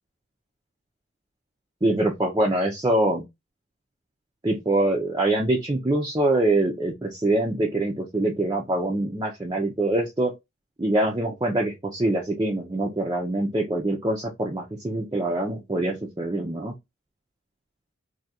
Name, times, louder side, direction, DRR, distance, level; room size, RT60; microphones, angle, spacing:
voice 1, 1.8-3.2 4.4-10.3 10.8-16.7, right 1 dB, 20° right, 0.5 m, -24 dB
2.7 x 2.4 x 4.1 m
head